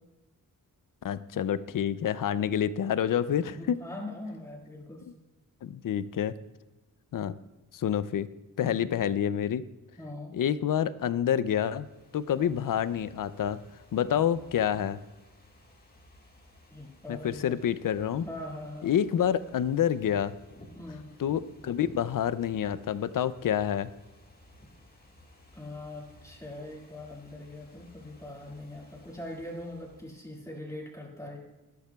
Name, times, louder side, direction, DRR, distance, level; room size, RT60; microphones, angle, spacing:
voice 1, 1.0-3.8 5.6-6.3 7.1-7.4 7.7-8.3 8.6-9.6 10.3-11.9 12.1-13.6 13.9-15.0 17.1-18.3 18.8-20.3 21.2-23.9, left 9 dB, 70° left, 15 dB, 0.5 m, -28 dB
voice 2, 3.5-5.1 8.6-8.9 10.0-10.4 12.3-12.6 14.1-14.3 16.7-17.8 18.2-18.9 20.7-21.1 25.5-31.4, left 1 dB, 10° left, -2 dB, 2.0 m, -42 dB
Ocean / Fireworks, 11.2-30.4, left 1 dB, 25° left, 1.7 m, -56 dB
12.0 x 11.5 x 2.3 m, 1.1 s
wide cardioid pair, 140°, 34 cm